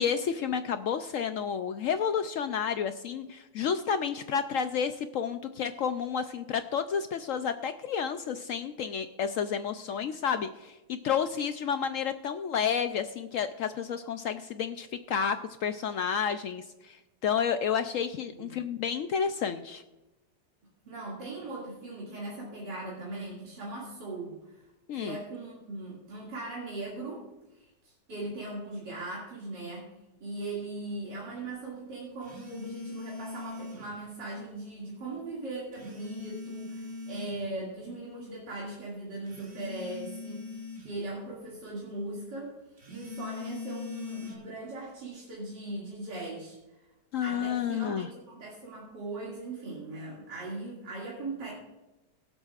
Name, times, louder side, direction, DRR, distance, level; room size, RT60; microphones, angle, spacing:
voice 1, 0.0-17.0 17.2-19.8 24.9-25.2 47.1-48.1, left 7 dB, 75° left, 9 dB, 0.7 m, -30 dB
voice 2, 20.8-24.6 24.9-27.3 27.5-29.9 30.2-42.5 42.9-46.6 47.2-51.5, right 2 dB, 75° right, -6 dB, 3.0 m, -39 dB
sound 1, 32.2-34.0 35.7-37.4 39.3-41.0 42.8-44.4, left 4 dB, 35° right, 2.0 m, -41 dB
22.5 x 8.0 x 2.4 m, 1.0 s
omnidirectional pair, 1.9 m